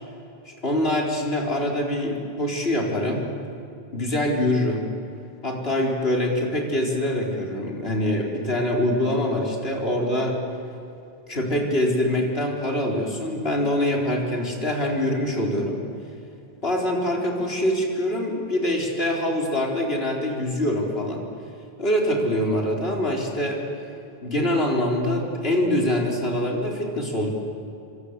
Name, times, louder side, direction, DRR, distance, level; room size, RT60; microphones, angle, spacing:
voice 1, 0.5-3.2 3.9-4.8 5.4-10.4 11.3-15.8 16.6-21.3 21.8-23.6 24.2-27.3, left 1 dB, 75° left, 0 dB, 4.6 m, -24 dB
28.0 x 25.5 x 8.3 m, 2.8 s
omnidirectional pair, 1.0 m